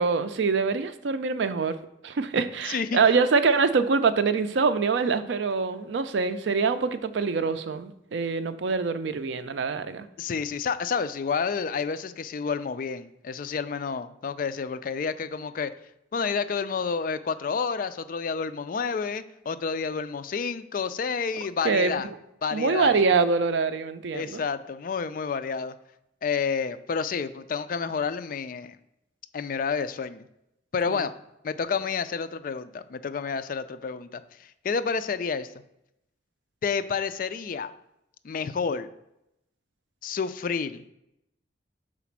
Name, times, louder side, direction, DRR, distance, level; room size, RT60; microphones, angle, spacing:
voice 1, 0.0-1.8 2.0-10.1 21.6-21.9 22.5-24.4 30.9-31.1, right 4 dB, 75° right, 12 dB, 0.4 m, -24 dB
voice 2, 2.7-3.0 10.2-15.7 16.1-22.1 22.4-23.0 24.1-25.7 26.2-28.8 29.3-30.2 30.7-31.1 31.4-35.5 36.6-37.7 38.2-38.9 40.0-40.8, left 5 dB, 50° left, 12 dB, 0.4 m, -29 dB
5.0 x 4.1 x 5.9 m, 0.84 s
head